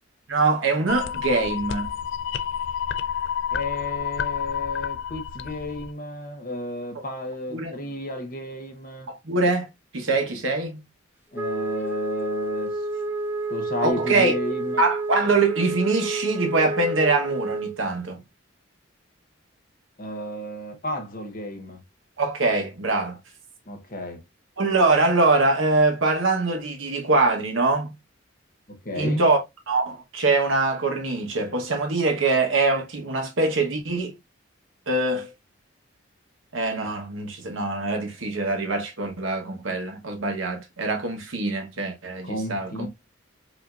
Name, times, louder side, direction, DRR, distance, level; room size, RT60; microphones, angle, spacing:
voice 1, 0.3-1.9 7.5-7.7 9.2-9.7 9.9-10.8 13.8-14.4 14.8-18.2 22.2-23.2 24.6-27.9 29.0-29.4 29.7-34.1 34.9-35.3 36.5-42.9, right 3 dB, 70° right, 1.1 m, -23 dB
sound 1, 0.9-5.9, left 8 dB, 60° left, 0.4 m, -30 dB
voice 2, 3.5-9.1 11.3-12.8 13.5-14.8 20.0-21.8 23.7-24.2 28.7-29.2 42.2-42.9, left 1 dB, 45° left, 1.0 m, -32 dB
Wind instrument woodwind instrument, 11.3-17.8, right 2 dB, 10° right, 0.4 m, -29 dB
4.9 x 2.8 x 2.4 m
head